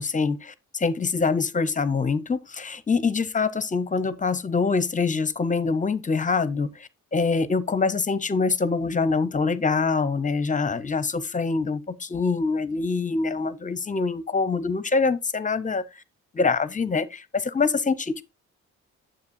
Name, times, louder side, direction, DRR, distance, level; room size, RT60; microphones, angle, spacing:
voice 1, 0.0-16.0 16.3-18.2, left 4 dB, 25° left, 0.8 m, -25 dB
9.4 x 7.6 x 2.7 m
cardioid pair, 90°, 30 cm